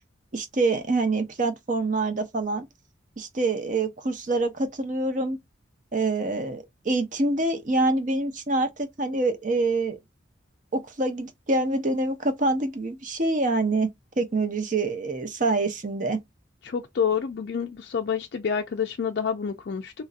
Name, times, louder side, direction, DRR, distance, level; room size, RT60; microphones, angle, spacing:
voice 1, 0.3-2.7 3.2-5.4 5.9-10.0 10.7-13.9 14.2-16.2, right 2 dB, 40° right, 0.6 m, -26 dB
voice 2, 16.6-19.9, left 7 dB, 60° left, 0.4 m, -28 dB
3.1 x 2.6 x 2.4 m
head